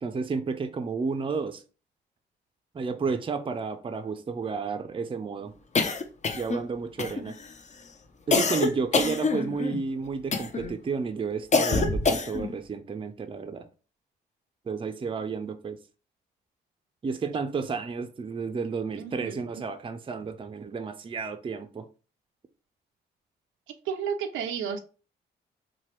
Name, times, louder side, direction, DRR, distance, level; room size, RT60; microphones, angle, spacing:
voice 1, 0.0-1.6 2.7-5.5 6.3-7.4 8.3-13.6 14.7-15.8 17.0-21.9, right 5 dB, 25° right, 0.5 m, -31 dB
sound 1, 5.7-6.7 7.0-7.5 8.3-9.8 10.3-10.7 11.5-12.5, left 4 dB, 35° left, 0.6 m, -26 dB
voice 2, 19.0-19.4 23.9-24.8, right 7 dB, 80° right, 0.4 m, -32 dB
2.9 x 2.2 x 3.1 m
supercardioid pair, 55°, 20 cm